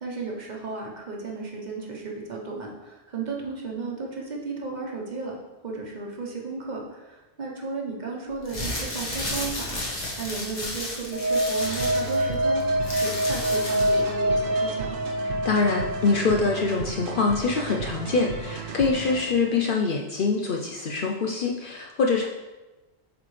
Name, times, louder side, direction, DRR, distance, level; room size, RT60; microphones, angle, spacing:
voice 1, 0.0-5.4 5.6-15.0, right 4 dB, 40° right, -1 dB, 1.1 m, -34 dB
sound 1, 8.4-14.1, left 1 dB, 40° left, 1.3 m, -33 dB
sound 2, 11.1-16.2, equal, 20° right, 0.4 m, -25 dB
sound 3, 11.6-19.5, right 5 dB, 70° right, 0.9 m, -36 dB
voice 2, 15.4-22.3, left 4 dB, 60° left, 1 dB, 0.6 m, -24 dB
8.0 x 4.0 x 3.2 m, 1.1 s
omnidirectional pair, 1.2 m